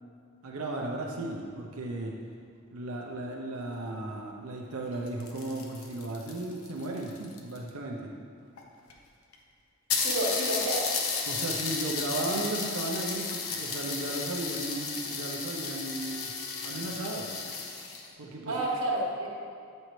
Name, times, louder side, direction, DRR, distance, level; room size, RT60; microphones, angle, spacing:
voice 1, 0.4-2.1 2.7-8.1 11.3-16.3 16.6-17.3 18.2-18.6, right 2 dB, 90° right, -1 dB, 0.7 m, -35 dB
sound 1, 4.9-7.7 8.6-8.7 8.9-9.0 9.3-9.4 9.9-18.1, left 5 dB, 85° left, 0.7 m, -33 dB
voice 2, 10.0-10.8 18.5-19.3, right 1 dB, 70° right, -2 dB, 1.3 m, -30 dB
7.7 x 5.4 x 3.1 m, 2.4 s
head